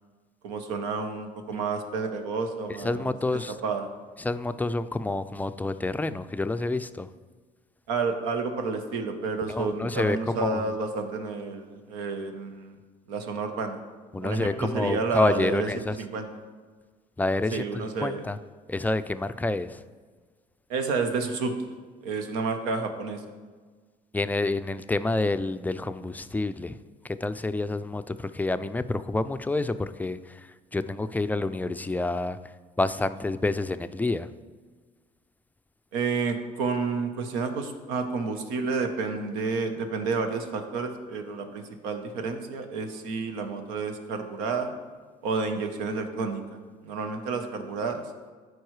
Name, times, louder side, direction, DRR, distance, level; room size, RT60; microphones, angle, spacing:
voice 1, 0.4-3.9 7.9-12.7 13.1-13.8 14.2-15.7 16.0-16.3 17.5-18.3 20.7-21.5 22.0-23.2 35.9-44.7 45.2-46.4 46.8-48.0, right 4 dB, 85° right, 7 dB, 0.9 m, -30 dB
voice 2, 2.8-3.5 4.2-7.1 9.5-10.7 14.1-16.0 17.2-17.6 18.0-18.4 18.7-19.8 24.1-26.8 27.0-32.4 32.8-34.3, left 2 dB, 10° left, 12 dB, 0.3 m, -28 dB
13.0 x 4.7 x 3.2 m, 1.5 s
supercardioid pair, 80°, 17 cm